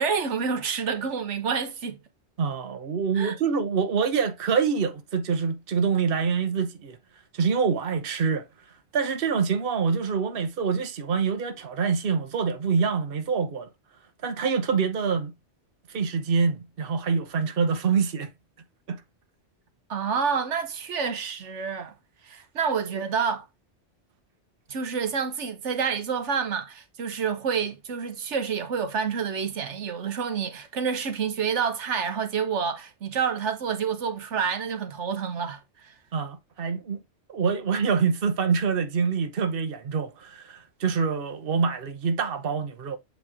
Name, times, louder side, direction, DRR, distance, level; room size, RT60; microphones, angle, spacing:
voice 1, 0.0-2.0 3.1-3.4 19.9-21.9 22.2-23.5 24.7-35.9, right 6 dB, 90° right, 1.3 m, -28 dB
voice 2, 2.4-7.0 7.3-8.5 8.9-13.7 14.2-15.3 15.9-18.3 18.9-19.0 36.1-37.0 37.3-43.0, right 5 dB, 55° right, 1.1 m, -25 dB
8.1 x 3.3 x 3.5 m
omnidirectional pair, 1.2 m